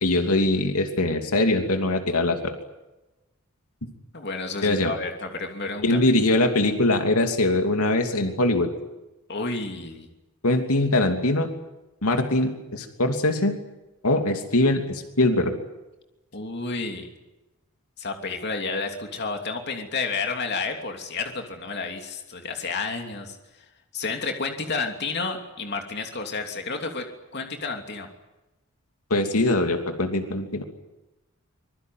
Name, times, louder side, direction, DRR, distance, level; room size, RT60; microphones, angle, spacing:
voice 1, 0.0-2.5 4.6-4.9 5.8-8.7 10.4-11.5 12.0-13.5 14.0-15.5 29.1-30.6, left 2 dB, 85° left, 5 dB, 2.9 m, -22 dB
voice 2, 4.1-6.1 9.3-10.1 16.3-17.1 18.0-23.4 23.9-27.1 27.3-28.1, left 4 dB, 50° left, 4 dB, 3.0 m, -31 dB
25.5 x 21.5 x 9.4 m, 1.0 s
head